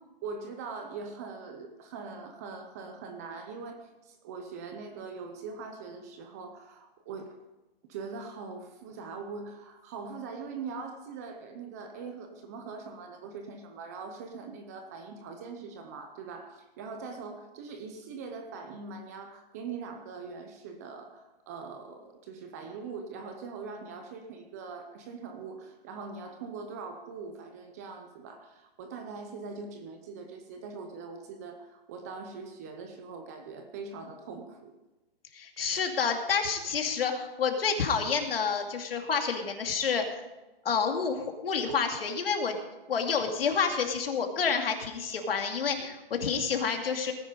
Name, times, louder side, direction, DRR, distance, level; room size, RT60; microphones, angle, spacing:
voice 1, 0.2-7.4 7.9-34.7, right 4 dB, 15° right, 6 dB, 0.7 m, -42 dB
voice 2, 35.3-40.2 40.6-42.6 42.9-47.1, left 6 dB, 70° left, 4 dB, 2.5 m, -29 dB
18.0 x 10.0 x 5.2 m, 1.1 s
hypercardioid pair, 170°, 30 cm